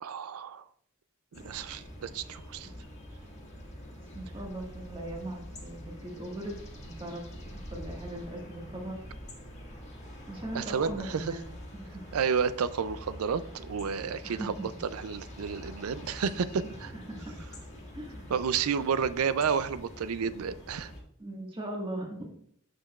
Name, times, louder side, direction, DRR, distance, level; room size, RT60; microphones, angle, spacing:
voice 1, 0.0-0.6 1.3-2.7 10.5-11.3 12.1-14.5 14.9-16.9 18.3-20.9, right 6 dB, 80° right, 15 dB, 0.4 m, -31 dB
sound 1, 1.3-21.0, equal, 30° left, 1.6 m, -45 dB
voice 2, 4.1-6.6 6.8-7.2 7.7-9.0 10.3-11.5 14.2-14.7 16.6-17.2 17.9-18.3 20.2-20.3 21.2-22.3, right 1 dB, 25° right, -1 dB, 1.6 m, -39 dB
8.9 x 6.6 x 2.4 m, 0.66 s
head